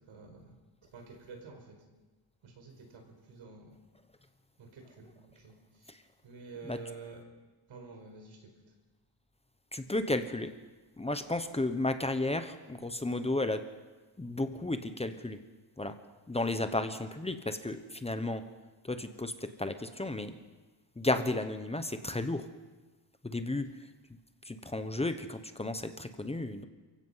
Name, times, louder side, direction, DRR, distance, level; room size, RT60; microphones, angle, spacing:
voice 1, 0.1-0.5 0.9-1.7 2.4-3.7 4.6-5.5 6.2-7.2 7.7-8.5, right 4 dB, 70° right, 3 dB, 5.1 m, -49 dB
voice 2, 9.7-10.6 11.0-13.6 14.2-15.4 15.8-15.9 16.3-18.4 18.8-20.3 21.0-22.5 23.2-23.7 24.4-26.6, left 2 dB, 15° left, 9 dB, 1.0 m, -33 dB
28.5 x 16.0 x 5.7 m, 1.2 s
wide cardioid pair, 150°, 48 cm